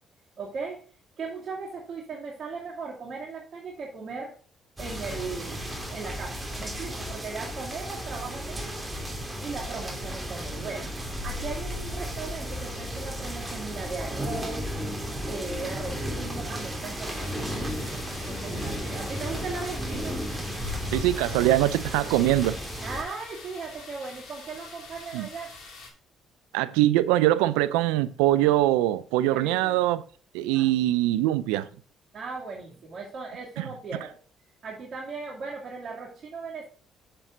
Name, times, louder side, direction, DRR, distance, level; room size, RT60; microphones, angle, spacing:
voice 1, 0.4-0.9 1.2-4.3 4.8-8.9 9.4-10.9 11.2-14.8 15.3-20.2 22.8-25.5 29.3-29.8 30.5-30.7 32.1-34.2 34.6-36.7, right 4 dB, 50° right, 2.6 m, -38 dB
sound 1, 4.8-23.0, equal, 15° right, 2.8 m, -34 dB
sound 2, 17.0-25.9, left 3 dB, 70° left, 3.0 m, -46 dB
voice 2, 20.9-22.6 25.1-25.3 26.5-30.0 30.3-31.7, right 15 dB, 90° right, 0.4 m, -23 dB
7.3 x 6.8 x 3.9 m
supercardioid pair, 60°, 0 cm